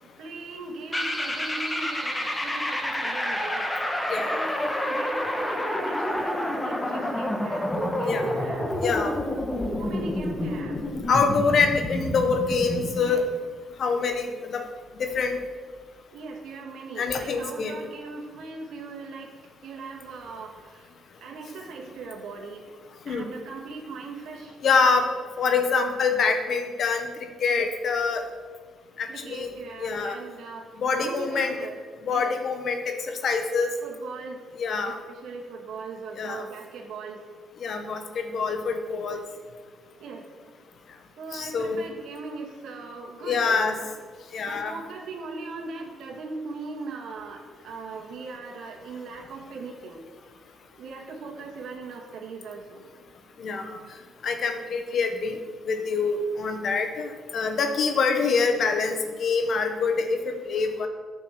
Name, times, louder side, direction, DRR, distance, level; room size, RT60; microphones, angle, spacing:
voice 1, 0.2-8.7 9.8-10.8 13.0-13.2 16.1-19.3 19.6-20.9 21.2-22.6 23.0-24.6 27.5-27.7 29.1-32.3 33.8-34.4 34.9-37.2 40.0-40.3 41.2-43.9 44.5-50.0 50.8-52.8 56.1-56.2, right 4 dB, 75° right, 1 dB, 2.1 m, -39 dB
sound 1, 0.9-13.0, left 1 dB, 10° left, 1.5 m, -29 dB
voice 2, 4.1-4.6 8.0-8.3 8.8-9.1 11.1-13.2 13.8-14.7 15.0-15.4 17.0-17.8 23.1-23.3 24.6-25.1 25.4-28.2 29.0-29.5 29.8-30.2 30.8-31.6 32.0-33.7 34.6-34.9 36.1-36.4 37.6-39.2 41.3-41.8 43.2-43.8 44.3-44.7 53.4-53.8 54.2-55.4 55.7-60.9, left 4 dB, 60° left, 6 dB, 1.4 m, -25 dB
10.5 x 6.9 x 6.4 m, 1.5 s
cardioid pair, 90°, 0 cm